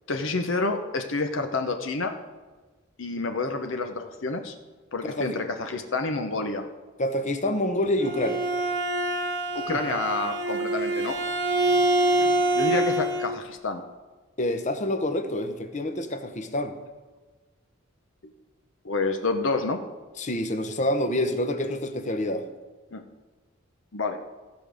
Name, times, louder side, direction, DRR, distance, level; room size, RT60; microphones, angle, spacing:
voice 1, 0.1-2.2 3.0-4.5 4.9-6.7 9.5-11.2 12.2-13.8 18.8-19.8 22.9-23.0 23.9-24.2, left 3 dB, 65° left, 6 dB, 0.9 m, -29 dB
voice 2, 5.0-5.4 7.0-8.5 9.7-9.8 14.4-16.8 20.2-22.5, left 1 dB, 35° left, 8 dB, 0.9 m, -27 dB
Bowed string instrument, 7.8-13.3, right 1 dB, 60° right, 1.1 m, -25 dB
15.0 x 5.1 x 6.3 m, 1.3 s
head